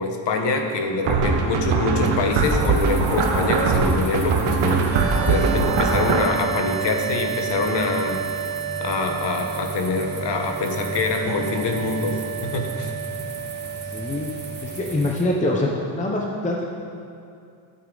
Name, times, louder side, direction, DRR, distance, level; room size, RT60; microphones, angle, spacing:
voice 1, 0.0-4.9 5.2-8.4 8.8-12.9, left 3 dB, 60° left, 4 dB, 1.2 m, -25 dB
sound 1, 1.1-6.3, right 4 dB, 80° right, 1.3 m, -21 dB
sound 2, 2.3-15.2, right 2 dB, 20° right, 1.1 m, -37 dB
sound 3, 4.9-15.0, right 10 dB, 45° right, 0.8 m, -31 dB
voice 2, 13.9-14.3 14.6-16.7, left 1 dB, 15° left, -1 dB, 0.7 m, -24 dB
12.5 x 8.5 x 3.9 m, 2.4 s
cardioid pair, 145°, 47 cm